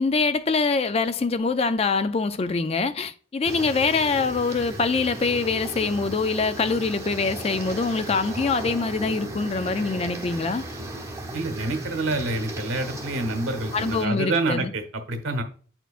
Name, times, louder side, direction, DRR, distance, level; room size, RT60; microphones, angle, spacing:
voice 1, 0.0-10.6 13.7-14.7, left 4 dB, 30° left, 0.3 m, -24 dB
sound 1, 3.4-14.1, right 2 dB, 15° right, 0.8 m, -36 dB
voice 2, 11.3-15.4, right 2 dB, 80° right, 1.1 m, -27 dB
9.0 x 4.4 x 2.4 m
head